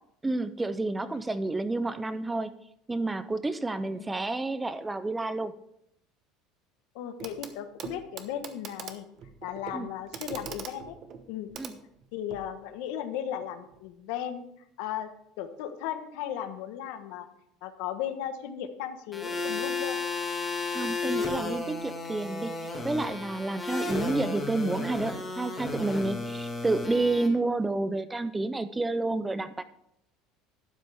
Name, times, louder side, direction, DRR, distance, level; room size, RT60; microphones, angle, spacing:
voice 1, 0.2-2.5 2.9-5.5 9.7-9.9 11.6-11.7 20.7-22.6 22.8-29.6, right 2 dB, 10° right, 13 dB, 0.4 m, -30 dB
voice 2, 6.9-9.0 9.4-11.0 11.3-11.5 12.1-14.4 14.8-15.1 15.4-17.3 17.6-20.0, left 10 dB, 75° left, 9 dB, 1.1 m, -36 dB
Clock, 7.2-7.5 7.8-12.5 13.7-13.8, right 7 dB, 40° right, 1.0 m, -42 dB
sound 1, 19.1-27.3, left 3 dB, 15° left, 1.8 m, -33 dB
12.0 x 9.3 x 3.4 m, 0.76 s
cardioid pair, 145°, 0 cm